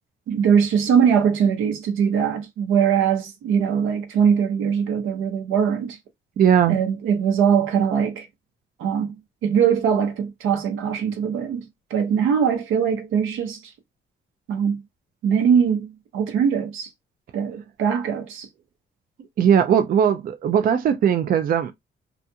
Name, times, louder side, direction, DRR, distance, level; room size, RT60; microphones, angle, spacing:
voice 1, 0.3-6.0 6.7-8.3 8.8-9.1 9.4-13.7 14.5-14.8 15.2-16.9 17.3-18.5, right 7 dB, 85° right, 0.8 m, -21 dB
voice 2, 6.4-6.8 19.4-21.7, right 8 dB, 45° right, 0.4 m, -18 dB
2.5 x 2.3 x 2.6 m
cardioid pair, 90°, 20 cm